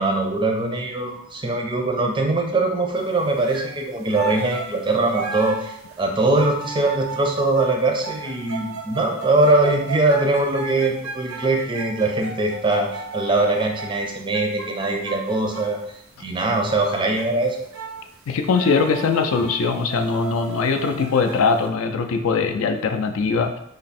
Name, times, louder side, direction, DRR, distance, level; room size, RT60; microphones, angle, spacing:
voice 1, 0.0-15.8 16.2-17.6, right 2 dB, 25° right, 2 dB, 0.4 m, -22 dB
sound 1, 3.4-3.8 4.1-15.9 16.7-17.3 17.6-18.1 18.4-21.6, right 4 dB, 75° right, 0.5 m, -35 dB
voice 2, 18.3-23.6, left 4 dB, 75° left, 5 dB, 0.4 m, -21 dB
3.4 x 2.0 x 4.1 m, 0.74 s
head